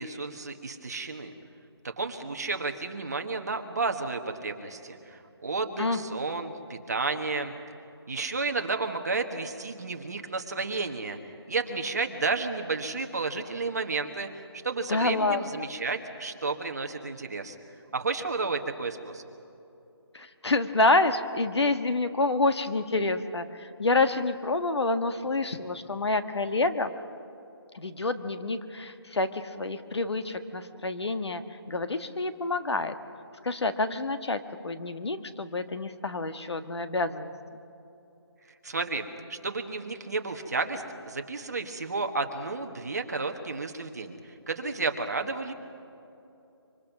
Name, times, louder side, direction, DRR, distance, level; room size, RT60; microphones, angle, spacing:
voice 1, 0.0-1.3 1.8-7.5 8.1-17.6 17.9-19.2 38.6-45.5, right 3 dB, 40° right, 5 dB, 1.5 m, -32 dB
voice 2, 14.9-15.4 20.1-26.9 27.7-32.9 33.4-37.3, left 2 dB, 75° left, 9 dB, 1.6 m, -28 dB
26.0 x 25.0 x 6.1 m, 2.8 s
hypercardioid pair, 180°, 14 cm